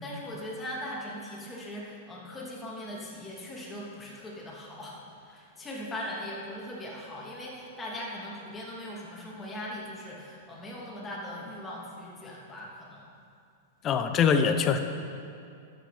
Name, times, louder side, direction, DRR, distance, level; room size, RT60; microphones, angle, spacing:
voice 1, 0.0-5.0 5.2-13.1, left 1 dB, 15° left, -5 dB, 2.7 m, -40 dB
voice 2, 13.8-14.8, left 6 dB, 30° left, 8 dB, 0.8 m, -23 dB
12.5 x 8.3 x 5.1 m, 2.5 s
hypercardioid pair, 135°, 0 cm